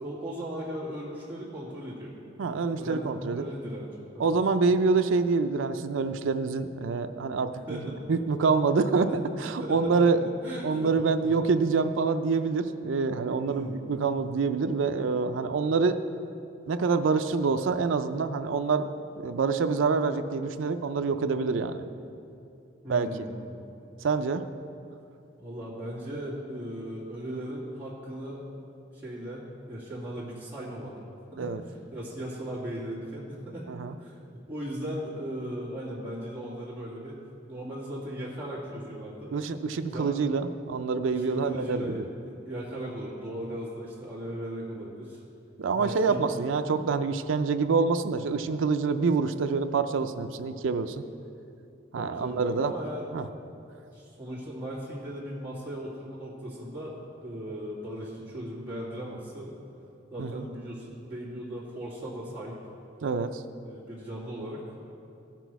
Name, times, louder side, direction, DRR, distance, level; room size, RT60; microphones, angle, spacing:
voice 1, 0.0-2.1 2.7-3.9 4.1-4.2 7.7-8.0 9.0-9.2 9.6-10.0 10.4-11.3 13.4-13.8 22.8-23.4 25.3-28.4 28.9-33.7 34.0-37.2 37.5-39.3 39.9-40.1 41.1-45.2 45.7-46.3 51.9-53.1 53.9-59.5 60.1-62.6 63.6-64.6, equal, 10° right, -9 dB, 2.1 m, -37 dB
voice 2, 2.4-3.5 4.2-7.8 8.1-9.1 9.4-10.3 10.6-16.0 16.7-18.9 19.1-21.8 22.9-23.1 24.0-24.4 31.4-31.6 33.7-33.9 39.3-42.0 45.6-51.0 51.9-52.7 53.1-53.2 60.2-60.5 63.0-63.4, right 4 dB, 85° right, 8 dB, 0.4 m, -26 dB
15.0 x 6.1 x 4.6 m, 2.7 s
head